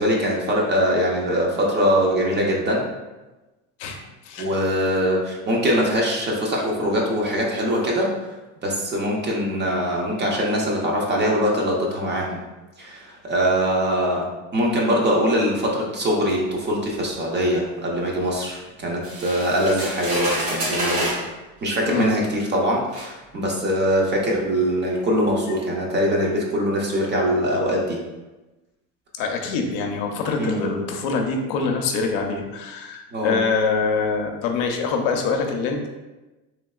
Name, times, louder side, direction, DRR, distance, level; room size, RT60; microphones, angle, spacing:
voice 1, 0.0-2.8 4.4-8.1 8.6-12.4 12.8-14.3 14.5-21.1 21.6-28.0 30.4-30.8 33.1-33.4, equal, 30° right, -2 dB, 0.6 m, -22 dB
sound 1, 19.0-21.3 22.2-22.3 22.9-23.1, right 1 dB, 70° right, 1.2 m, -28 dB
voice 2, 21.9-22.2 29.2-35.9, left 4 dB, 65° left, 3 dB, 0.6 m, -24 dB
3.2 x 2.8 x 2.3 m, 1.1 s
cardioid pair, 130°, 38 cm